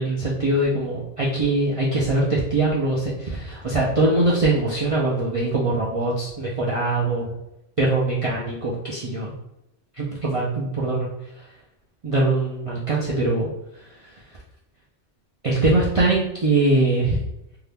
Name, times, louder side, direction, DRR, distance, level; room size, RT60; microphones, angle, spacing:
voice 1, 0.0-7.3 7.8-9.3 10.0-11.1 12.0-13.5 15.4-17.2, right 2 dB, 50° right, -6 dB, 0.4 m, -22 dB
2.7 x 2.3 x 3.3 m, 0.84 s
omnidirectional pair, 1.2 m